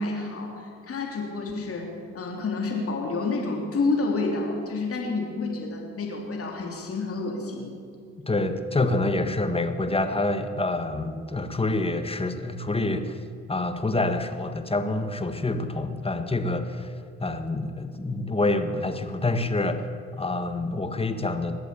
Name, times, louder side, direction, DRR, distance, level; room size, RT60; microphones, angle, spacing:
voice 1, 0.0-7.7, left 3 dB, 50° left, 0 dB, 3.4 m, -29 dB
voice 2, 8.3-13.2 13.5-16.9 17.2-19.8 20.2-21.6, left 2 dB, 20° left, 8 dB, 1.6 m, -27 dB
21.0 x 8.0 x 8.4 m, 2.2 s
supercardioid pair, 65°, 30 cm